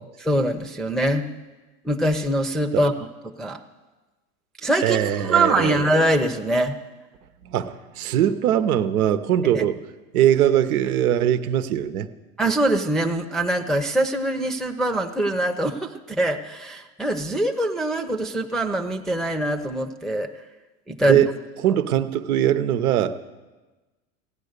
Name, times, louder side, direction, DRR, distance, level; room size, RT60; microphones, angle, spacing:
voice 1, 0.2-1.3 1.8-2.9 3.4-3.6 4.6-6.8 9.5-9.6 12.4-20.3 20.9-21.2, right 1 dB, ahead, 1 dB, 0.7 m, -23 dB
voice 2, 4.8-5.8 7.4-9.8 10.1-12.1 21.1-21.3 21.6-23.1, right 11 dB, 80° right, 10 dB, 1.0 m, -21 dB
16.0 x 9.9 x 6.7 m, 1.2 s
hypercardioid pair, 100°, 43 cm